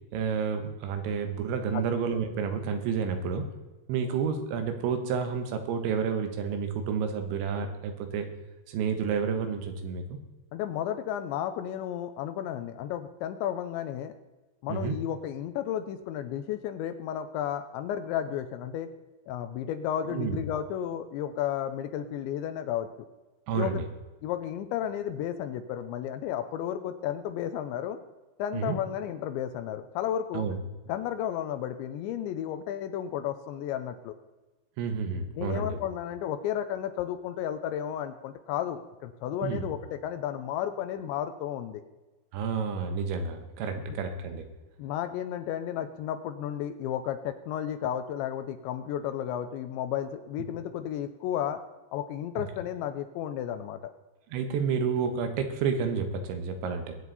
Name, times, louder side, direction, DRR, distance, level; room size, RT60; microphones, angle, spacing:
voice 1, 0.1-3.5 3.9-8.3 8.7-10.2 14.7-15.0 20.1-20.4 23.5-23.9 28.5-28.8 30.3-30.6 34.8-35.8 39.4-39.7 42.3-44.4 52.4-52.5 54.3-57.0, right 6 dB, 85° right, 7 dB, 3.6 m, -30 dB
voice 2, 10.5-14.2 14.6-18.9 19.3-22.9 23.5-23.8 24.2-28.0 28.4-30.5 30.9-34.1 35.4-41.8 44.8-51.6 51.9-53.8, left 10 dB, 85° left, 8 dB, 3.0 m, -33 dB
22.0 x 8.0 x 4.1 m, 1.1 s
omnidirectional pair, 5.2 m